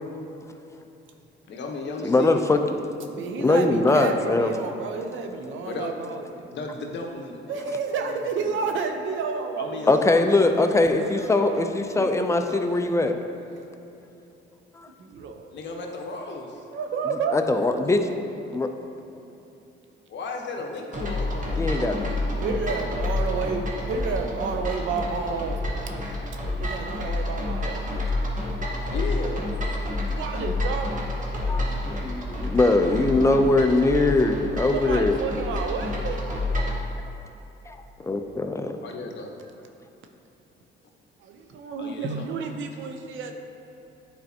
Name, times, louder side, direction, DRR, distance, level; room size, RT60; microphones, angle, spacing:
voice 1, 1.5-2.6 5.6-6.0 6.5-8.5 9.6-10.1 10.4-10.8 15.5-16.6 20.1-22.4 28.9-29.4 38.8-39.3 41.8-42.3, left 3 dB, 65° left, 1 dB, 1.0 m, -35 dB
voice 2, 2.0-2.6 3.4-4.5 9.9-13.1 14.8-14.9 17.3-18.1 18.5-18.7 21.6-22.1 31.5-35.2 37.7-37.8 38.1-38.7, left 2 dB, 15° left, 6 dB, 0.5 m, -21 dB
voice 3, 3.1-6.5 7.5-9.9 10.1-10.2 10.5-10.6 10.9-12.8 15.0-15.5 16.7-17.4 21.7-22.1 22.4-25.6 26.6-27.9 30.2-31.7 32.4-32.5 34.7-36.2 41.2-43.3, right 5 dB, 75° right, 5 dB, 0.7 m, -31 dB
sound 1, 20.9-36.8, left 1 dB, 40° right, 1.2 m, -29 dB
10.0 x 4.4 x 2.8 m, 2.9 s
cardioid pair, 90°, 20 cm